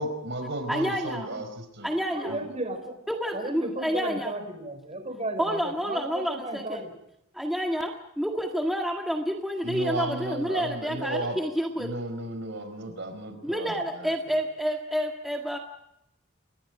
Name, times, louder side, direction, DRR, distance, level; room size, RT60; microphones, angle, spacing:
voice 1, 0.0-1.9 2.3-2.4 9.6-11.4 11.8-13.7, right 1 dB, 60° right, 8 dB, 4.9 m, -33 dB
voice 2, 0.7-1.4 1.8-2.4 3.1-4.3 5.4-6.8 7.3-12.0 13.4-15.6, equal, ahead, 1 dB, 1.8 m, -29 dB
voice 3, 2.1-3.0 3.3-6.9, right 1 dB, 35° right, 6 dB, 5.4 m, -34 dB
29.5 x 23.0 x 4.9 m, 0.80 s
head